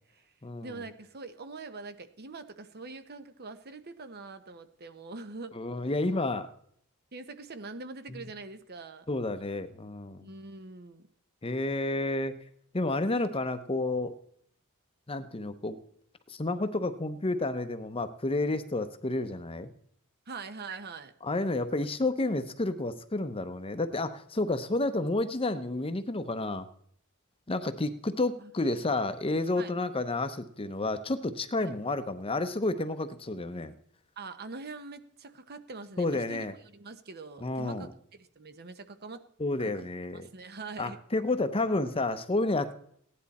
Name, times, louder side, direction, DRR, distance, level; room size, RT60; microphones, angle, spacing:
voice 1, 0.0-0.3 0.6-5.6 7.1-9.0 10.2-11.1 20.3-21.1 28.4-28.5 29.6-29.7 31.6-31.7 34.2-39.3 39.6-39.9 40.1-41.0, right 3 dB, 50° right, 10 dB, 1.0 m, -43 dB
voice 2, 5.5-6.5 8.1-8.2 9.1-10.3 11.4-12.4 12.7-14.2 15.1-15.8 16.3-19.7 21.2-26.7 27.5-33.7 36.0-36.5 37.4-37.9 39.4-40.3 40.8-42.7, left 2 dB, 25° left, 10 dB, 0.8 m, -30 dB
16.5 x 10.5 x 4.2 m, 0.66 s
head